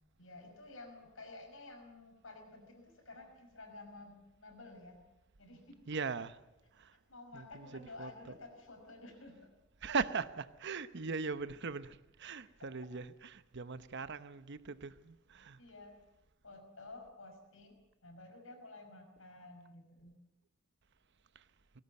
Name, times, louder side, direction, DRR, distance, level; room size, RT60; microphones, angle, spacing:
voice 1, 0.2-5.0 5.4-5.8 7.1-9.4 15.6-16.0 16.4-17.8 18.0-20.1, left 2 dB, 80° left, 5.7 m, -52 dB
voice 2, 5.9-6.3 6.8-6.9 7.3-8.4 9.8-15.6 21.3-21.4, right 4 dB, 60° right, 0.9 m, -40 dB
19.5 x 17.5 x 8.4 m
head